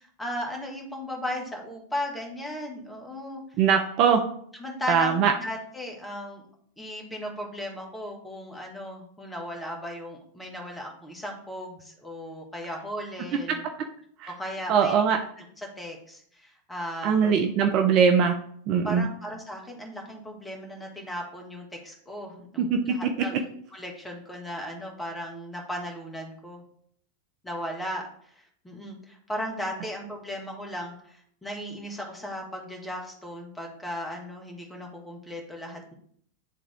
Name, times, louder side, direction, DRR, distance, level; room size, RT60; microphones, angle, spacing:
voice 1, 0.0-3.6 4.5-6.4 6.8-13.6 14.3-17.3 18.8-26.6 27.4-35.9, left 1 dB, 10° left, 1 dB, 1.8 m, -36 dB
voice 2, 3.6-4.2 4.9-5.3 14.2-14.3 14.7-15.2 17.0-18.3 18.7-19.1 22.6-23.0, right 7 dB, 40° right, 5 dB, 0.6 m, -21 dB
10.0 x 3.6 x 3.5 m, 0.63 s
figure-of-eight pair, 90°, 0 cm